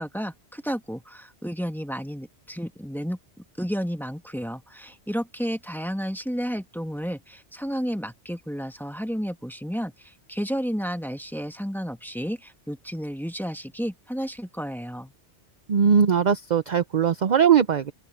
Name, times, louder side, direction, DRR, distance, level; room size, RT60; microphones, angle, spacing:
voice 1, 0.0-15.1, equal, ahead, 1.9 m, -32 dB
voice 2, 15.7-17.9, right 7 dB, 45° right, 0.7 m, -20 dB
open air
omnidirectional pair, 1.2 m